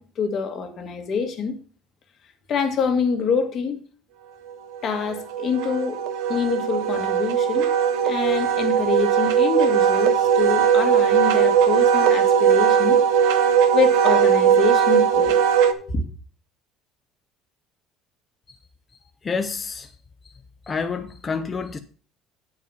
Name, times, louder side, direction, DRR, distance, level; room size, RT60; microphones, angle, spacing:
voice 1, 0.0-1.5 2.5-3.8 4.8-6.0 6.3-7.7 8.0-13.0 13.7-15.3 15.9-16.0, left 5 dB, 40° left, 1.5 m, -26 dB
Wind instrument woodwind instrument, 4.7-15.7, right 7 dB, 90° right, 0.9 m, -19 dB
voice 2, 19.2-19.9 20.7-21.8, left 5 dB, 20° left, 0.5 m, -28 dB
8.5 x 4.7 x 6.8 m
cardioid pair, 155°, 0 cm